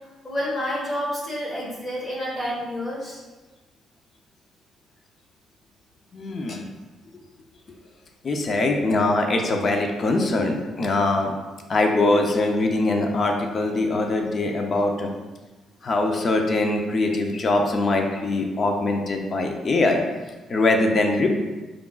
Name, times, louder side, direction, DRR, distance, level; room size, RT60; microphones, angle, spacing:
voice 1, 0.2-3.2, equal, 30° left, -4 dB, 1.3 m, -29 dB
voice 2, 6.1-6.7 8.2-11.3 11.7-15.1 15.8-20.0 20.5-21.3, left 2 dB, 45° left, 3 dB, 0.6 m, -22 dB
4.9 x 3.6 x 2.4 m, 1.2 s
cardioid pair, 90°, 0 cm